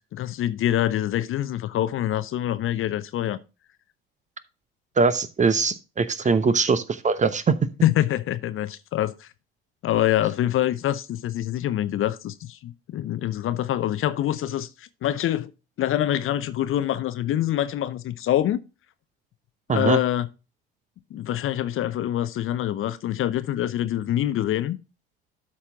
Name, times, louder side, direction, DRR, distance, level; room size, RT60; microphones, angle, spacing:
voice 1, 0.1-3.4 7.8-9.3 9.8-15.5 15.8-18.6 19.7-20.3 21.1-24.8, left 12 dB, 45° left, 0.7 m, -25 dB
voice 2, 5.0-7.6 19.7-20.0, right 4 dB, 25° right, 0.8 m, -21 dB
12.5 x 4.3 x 3.6 m
hypercardioid pair, 60°, 31 cm